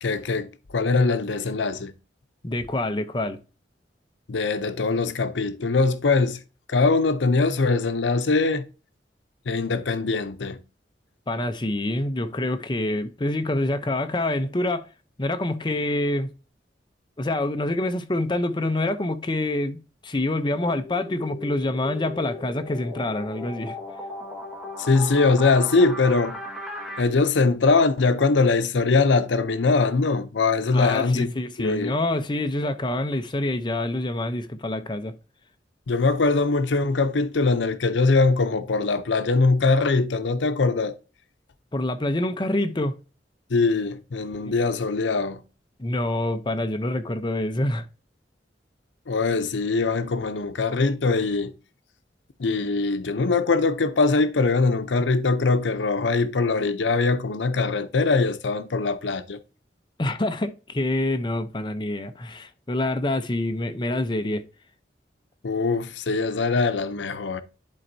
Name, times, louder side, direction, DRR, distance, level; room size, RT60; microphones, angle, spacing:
voice 1, 0.0-1.9 4.3-6.4 6.7-8.6 9.5-10.6 24.8-26.4 27.0-31.3 31.6-32.0 35.9-40.9 43.5-45.4 49.1-51.5 52.4-59.4 65.4-67.4, left 3 dB, 90° left, 0.6 m, -22 dB
voice 2, 2.4-3.4 11.3-14.9 15.2-16.3 17.2-23.8 30.7-35.1 41.7-42.9 44.4-44.5 45.8-47.8 60.0-64.4, left 1 dB, 25° left, 0.6 m, -26 dB
sound 1, 20.5-27.0, left 1 dB, ahead, 1.7 m, -37 dB
10.5 x 4.4 x 2.7 m
head